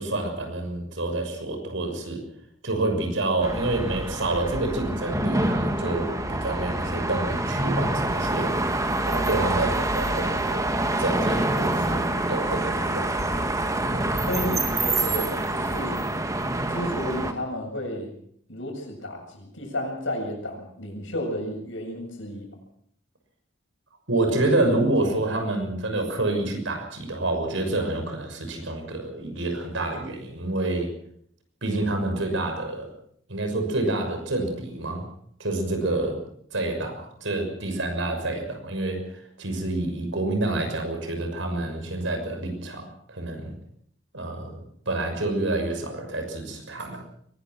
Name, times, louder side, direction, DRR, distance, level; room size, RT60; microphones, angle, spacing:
voice 1, 0.0-2.2 2.6-8.5 9.1-10.7 11.0-13.2 24.1-30.9 31.6-32.9 33.3-35.1 35.4-36.2 36.5-43.5 44.1-44.6 44.9-47.0, right 2 dB, 75° right, 4 dB, 6.3 m, -28 dB
sound 1, 3.4-17.3, right 2 dB, 15° right, 1.9 m, -26 dB
voice 2, 13.9-16.0 16.7-18.1 18.5-22.5, left 1 dB, 75° left, 2 dB, 7.7 m, -32 dB
22.5 x 20.0 x 6.1 m, 0.66 s
head